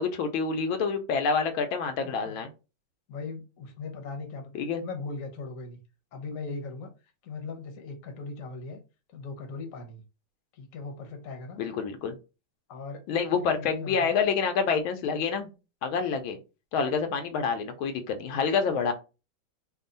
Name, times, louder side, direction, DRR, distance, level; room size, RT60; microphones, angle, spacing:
voice 1, 0.0-2.5 4.5-4.8 11.6-12.1 13.1-15.5 15.8-16.4 16.7-18.9, left 5 dB, 85° left, 1.4 m, -27 dB
voice 2, 2.0-2.4 3.1-4.5 4.8-5.8 6.1-6.9 7.2-8.8 9.1-10.0 10.5-11.6 12.7-13.0 13.4-14.2, left 3 dB, 55° left, 1.0 m, -39 dB
3.5 x 2.3 x 3.8 m
omnidirectional pair, 2.2 m